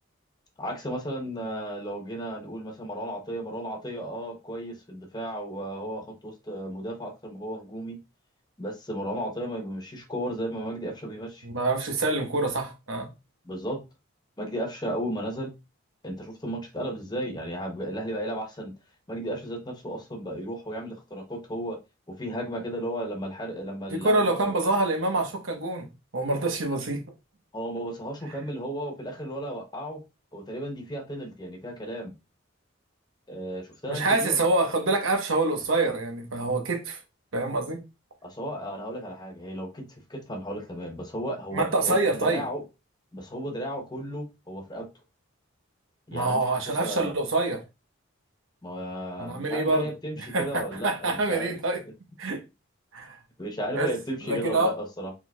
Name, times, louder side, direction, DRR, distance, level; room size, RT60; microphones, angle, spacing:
voice 1, 0.6-8.0 8.6-11.5 13.4-13.8 14.4-15.5 16.0-18.7 19.1-21.8 22.1-24.6 27.5-30.0 30.3-32.1 33.3-34.4 38.2-42.6 43.1-44.9 46.1-47.1 48.6-51.5 53.4-55.1, right 1 dB, 20° left, 0.8 m, -34 dB
voice 2, 11.4-13.1 23.9-25.9 26.1-27.0 33.9-37.0 37.3-37.8 41.5-42.4 46.1-47.6 49.2-49.9 50.2-50.5 50.8-51.8 52.2-52.4 52.9-53.2 53.7-53.9 54.3-54.7, right 2 dB, 70° right, 1.1 m, -26 dB
4.3 x 4.3 x 2.3 m
head